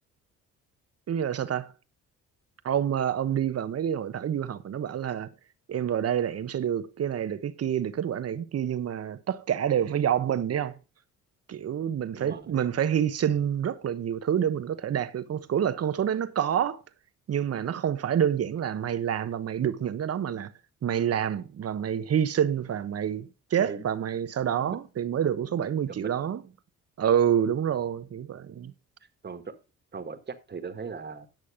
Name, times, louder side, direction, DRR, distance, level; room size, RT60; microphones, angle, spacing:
voice 1, 1.1-1.7 2.6-5.3 5.7-10.8 11.5-16.8 17.3-20.5 20.8-26.4 27.0-28.7, right 9 dB, 50° right, 1.1 m, -27 dB
voice 2, 12.1-12.7 23.6-23.9 24.6-24.8 25.9-26.1 27.8-27.9 29.2-29.4 29.9-31.3, right 5 dB, 35° right, 1.8 m, -38 dB
11.0 x 6.3 x 5.0 m
cardioid pair, 85°, 31 cm